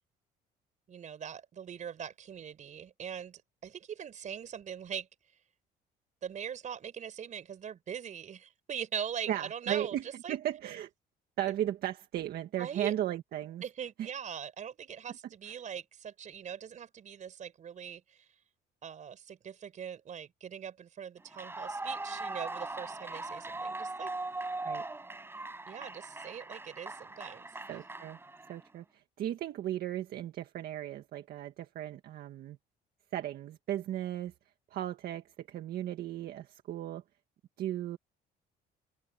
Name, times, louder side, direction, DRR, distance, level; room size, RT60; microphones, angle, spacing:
voice 1, 0.9-5.1 6.2-10.4 12.6-12.9 13.6-18.3 18.8-24.1 25.7-27.5, right 8 dB, 45° right, 4.6 m, -41 dB
voice 2, 9.3-10.0 10.3-10.9 11.4-13.6 14.0-14.1 15.5-15.6 24.6-24.8 27.7-28.2 28.5-32.6 33.1-34.3 34.7-37.0 37.6-38.0, right 12 dB, 65° right, 1.8 m, -36 dB
Clapping / Cheering / Applause, 21.3-28.7, right 2 dB, 15° right, 5.3 m, -40 dB
cardioid pair, 110°, 17 cm